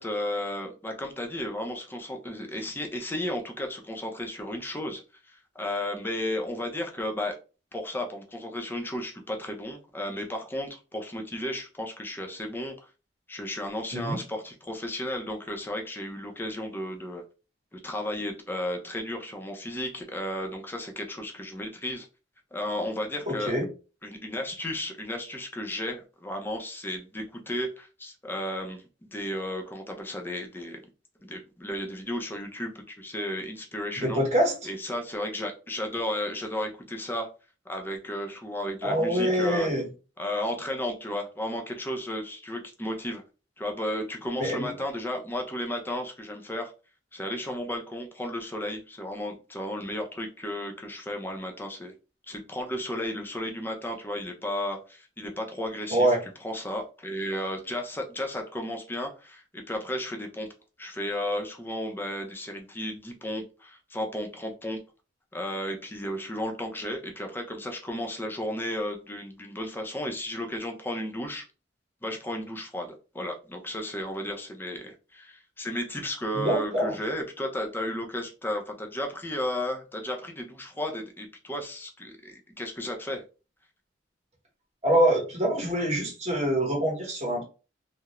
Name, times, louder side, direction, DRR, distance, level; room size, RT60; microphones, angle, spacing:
voice 1, 0.0-7.4 7.7-12.7 13.3-17.2 17.7-22.1 22.5-23.5 24.0-28.8 29.1-30.8 31.2-34.2 34.6-37.3 37.7-39.7 40.2-43.2 43.6-46.7 47.1-51.9 52.3-56.1 56.4-60.5 60.8-64.8 65.3-71.4 72.0-83.2, left 1 dB, 10° left, 3 dB, 0.4 m, -34 dB
voice 2, 23.3-23.7 34.0-34.5 38.8-39.9 44.4-44.7 55.9-56.2 76.3-76.9 84.8-87.4, right 1 dB, 35° right, -1 dB, 0.9 m, -25 dB
2.3 x 2.0 x 2.9 m, 0.33 s
head